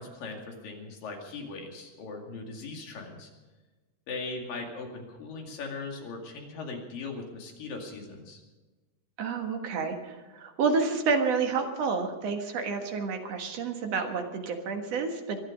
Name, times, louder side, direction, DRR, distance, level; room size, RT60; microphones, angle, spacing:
voice 1, 0.0-3.3 4.1-8.4, left 3 dB, 70° left, 2 dB, 4.0 m, -39 dB
voice 2, 9.2-15.4, right 5 dB, 50° right, 4 dB, 2.4 m, -29 dB
23.5 x 11.0 x 5.3 m, 1.2 s
omnidirectional pair, 4.2 m